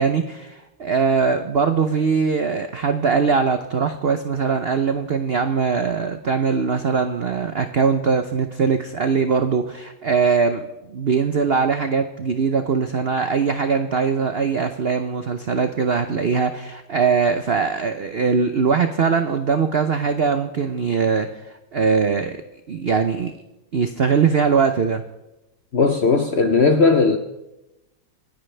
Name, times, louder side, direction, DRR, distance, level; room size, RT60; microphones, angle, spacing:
voice 1, 0.0-10.6 10.9-22.4 22.7-23.3 23.7-25.0, right 5 dB, 85° right, 8 dB, 0.5 m, -21 dB
voice 2, 25.7-27.2, left 4 dB, 55° left, 6 dB, 0.7 m, -17 dB
26.5 x 10.5 x 3.3 m, 0.98 s
omnidirectional pair, 2.1 m